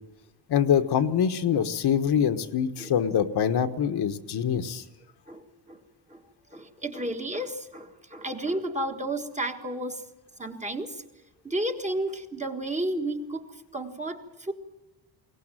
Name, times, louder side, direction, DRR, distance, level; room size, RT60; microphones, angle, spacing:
voice 1, 0.5-4.8, left 8 dB, 60° left, 8 dB, 1.3 m, -24 dB
voice 2, 6.5-10.0 10.4-11.0 11.4-13.4 13.7-14.5, right 1 dB, 15° right, 4 dB, 1.6 m, -32 dB
22.5 x 18.5 x 9.0 m, 1.0 s
wide cardioid pair, 175°, 44 cm